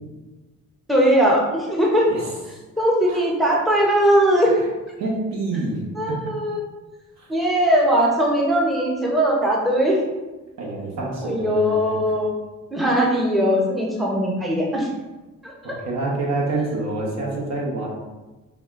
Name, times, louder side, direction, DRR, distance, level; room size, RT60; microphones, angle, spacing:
voice 1, 0.9-2.1 2.8-4.6 6.0-6.6 7.3-10.0 11.2-12.3 12.7-14.9 15.4-15.5, equal, ahead, -2 dB, 0.6 m, -19 dB
voice 2, 5.0-5.8 6.1-6.3 7.2-7.3 10.6-12.1 15.6-17.9, right 2 dB, 65° right, -2 dB, 1.0 m, -27 dB
4.7 x 2.3 x 2.4 m, 1.1 s
cardioid pair, 90°, 30 cm